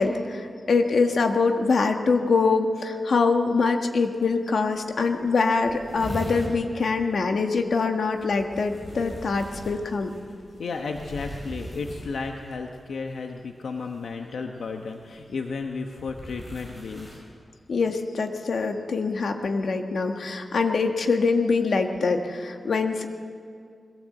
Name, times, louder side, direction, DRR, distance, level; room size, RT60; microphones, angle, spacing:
voice 1, 0.0-10.1 17.7-23.1, left 4 dB, 70° left, 4 dB, 1.6 m, -24 dB
sound 1, 4.2-4.3 4.6-4.7 5.0-5.1 5.3-6.6 8.1-12.5 13.8-14.1 14.9-17.2, equal, 15° left, 5.9 m, -39 dB
voice 2, 10.6-17.2, left 4 dB, 85° left, 3 dB, 1.2 m, -33 dB
21.5 x 17.0 x 7.8 m, 2.2 s
wide cardioid pair, 145°, 0 cm